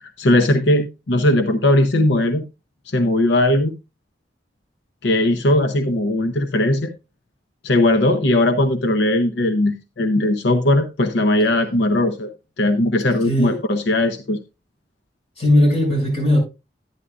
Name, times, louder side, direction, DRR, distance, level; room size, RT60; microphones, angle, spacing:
voice 1, 0.0-2.4 2.9-3.7 5.0-6.9 7.6-12.3 12.6-14.4, left 1 dB, 80° left, 0.7 m, -18 dB
voice 2, 13.2-13.6 15.4-16.4, left 1 dB, 30° left, 7.0 m, -18 dB
11.0 x 9.7 x 2.4 m
head